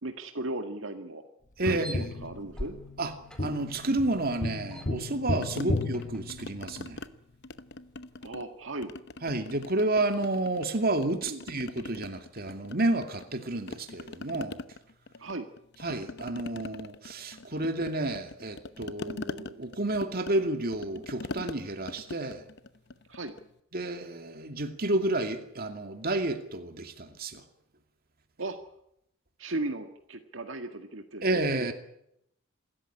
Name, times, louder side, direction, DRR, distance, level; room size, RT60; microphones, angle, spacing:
voice 1, 0.0-1.2 1.6-2.8 5.6-5.8 8.2-8.9 11.2-11.4 15.2-15.5 23.1-23.3 28.4-28.6 29.4-31.2 31.5-31.7, right 2 dB, 70° right, 1.9 m, -36 dB
sound 1, 1.6-7.1, equal, 5° left, 4.2 m, -51 dB
voice 2, 1.6-2.1 3.0-3.1 3.4-7.0 9.2-14.6 15.8-22.4 23.7-27.4 31.2-31.7, right 2 dB, 45° right, 2.5 m, -30 dB
Tap, 1.7-6.9 9.5-9.6, left 2 dB, 40° left, 1.5 m, -34 dB
sound 2, 5.4-7.1 7.4-8.5 8.8-10.7 11.0-13.4 13.7-23.5, left 2 dB, 55° left, 0.9 m, -42 dB
27.0 x 14.0 x 9.9 m
head